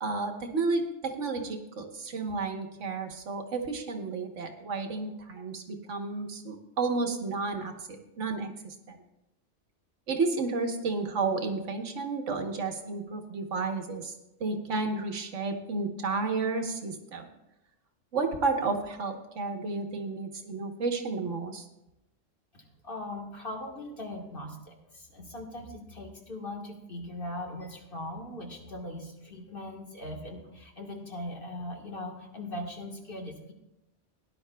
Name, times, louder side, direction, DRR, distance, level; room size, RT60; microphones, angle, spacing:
voice 1, 0.0-9.0 10.1-14.1 14.4-17.3 18.1-21.6, right 4 dB, 85° right, 5 dB, 1.5 m, -32 dB
voice 2, 22.5-33.5, left 1 dB, 50° left, 1 dB, 1.7 m, -40 dB
17.5 x 11.0 x 2.3 m, 0.92 s
omnidirectional pair, 1.2 m